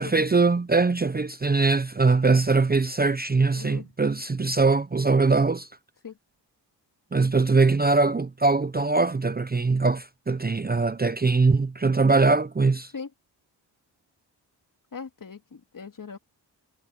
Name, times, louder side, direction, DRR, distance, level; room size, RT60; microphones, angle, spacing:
voice 1, 0.0-5.7 7.1-12.9, right 3 dB, 20° right, 0.8 m, -22 dB
voice 2, 3.5-3.9 6.0-6.2 12.9-13.1 14.9-16.2, left 5 dB, 45° left, 2.7 m, -39 dB
cardioid pair, 55°, 44 cm